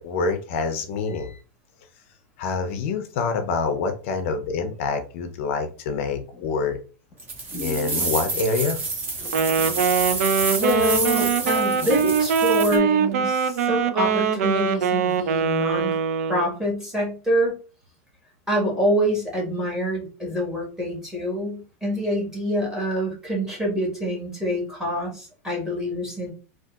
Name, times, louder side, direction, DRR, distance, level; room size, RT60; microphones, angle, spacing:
voice 1, 0.0-1.4 2.4-6.8 7.6-8.8, left 4 dB, 55° left, 0.5 m, -26 dB
sound 1, 6.3-6.7 7.1-7.2 7.5-8.5 9.2-9.9 10.2-10.3 10.8-10.9 11.1-13.0 13.4-13.5, left 2 dB, 20° left, 0.9 m, -39 dB
sound 2, 7.2-12.8, right 3 dB, 25° right, 0.9 m, -28 dB
Wind instrument woodwind instrument, 9.3-16.5, right 6 dB, 75° right, 0.4 m, -22 dB
voice 2, 10.4-16.0 16.3-17.5 18.5-26.3, equal, 5° right, 1.3 m, -26 dB
3.6 x 2.4 x 2.3 m
supercardioid pair, 155°, 8 cm